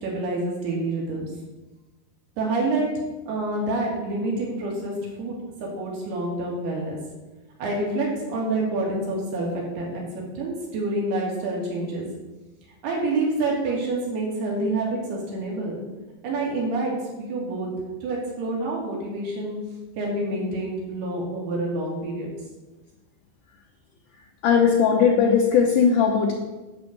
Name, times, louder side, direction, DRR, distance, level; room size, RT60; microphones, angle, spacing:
voice 1, 0.0-1.3 2.4-2.9 3.3-7.0 7.6-10.0 10.4-12.0 12.8-15.8 16.2-16.9 17.2-17.7 18.0-19.6 20.0-22.3, right 2 dB, 70° right, -3 dB, 4.4 m, -27 dB
voice 2, 24.4-26.3, left 6 dB, 80° left, 1 dB, 1.9 m, -18 dB
11.0 x 4.6 x 7.9 m, 1.2 s
omnidirectional pair, 4.7 m